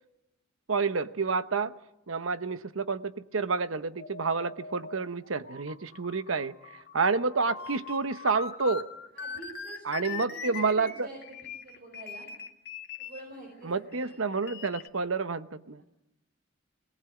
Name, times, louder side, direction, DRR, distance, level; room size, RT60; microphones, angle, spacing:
voice 1, 0.7-1.7 2.1-6.5 6.9-8.8 9.8-11.1 13.6-15.8, right 4 dB, 80° right, 12 dB, 0.9 m, -29 dB
sound 1, 4.0-13.2 13.9-14.9, left 6 dB, 55° left, 2.1 m, -42 dB
voice 2, 7.4-7.8 9.1-12.3 13.0-14.2 15.8-15.9, right 1 dB, 50° right, 1 dB, 5.1 m, -48 dB
21.5 x 19.0 x 9.2 m, 0.93 s
head